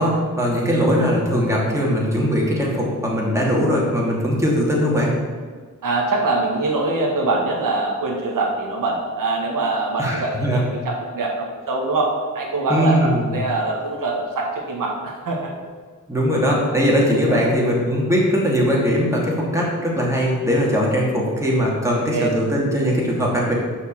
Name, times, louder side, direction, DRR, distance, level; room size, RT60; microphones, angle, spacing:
voice 1, 0.0-5.1 10.0-10.6 12.7-13.4 16.1-23.5, equal, 10° right, -4 dB, 2.8 m, -20 dB
voice 2, 5.8-15.5 17.3-17.5 21.9-22.3, right 2 dB, 90° right, -1 dB, 1.7 m, -24 dB
6.5 x 5.6 x 7.2 m, 1.5 s
cardioid pair, 75°, 32 cm